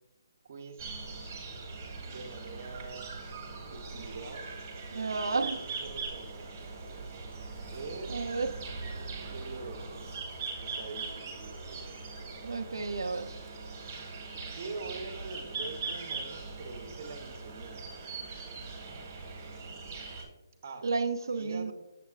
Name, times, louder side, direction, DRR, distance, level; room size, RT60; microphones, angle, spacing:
voice 1, 0.4-1.1 2.0-3.1 3.7-4.5 4.9-6.7 7.7-8.5 9.3-10.1 10.6-11.9 14.5-17.9 20.6-20.9 21.3-21.7, right 4 dB, 40° right, 4 dB, 0.9 m, -44 dB
sound 1, 0.8-20.2, right 4 dB, 15° right, 1.5 m, -41 dB
voice 2, 4.9-5.6 8.1-8.5 12.4-13.4 20.8-21.7, right 4 dB, 80° right, 7 dB, 0.5 m, -31 dB
7.5 x 7.4 x 2.4 m, 0.95 s
hypercardioid pair, 170°, 2 cm